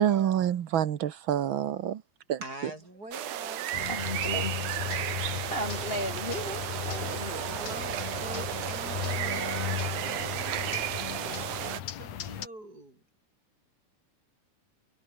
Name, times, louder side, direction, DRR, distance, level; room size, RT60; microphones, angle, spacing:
voice 1, 0.0-2.0 2.3-2.4, right 10 dB, 55° right, 1.5 m, -26 dB
voice 2, 2.4-3.8 7.5-13.0, right 1 dB, 30° right, 8.2 m, -44 dB
sound 1, 3.1-11.8, right 13 dB, 85° right, 2.7 m, -33 dB
sound 2, 3.7-12.5, left 10 dB, 65° left, 2.6 m, -36 dB
voice 3, 3.9-4.6 5.5-7.5, left 1 dB, 20° left, 1.8 m, -35 dB
omnidirectional pair, 3.5 m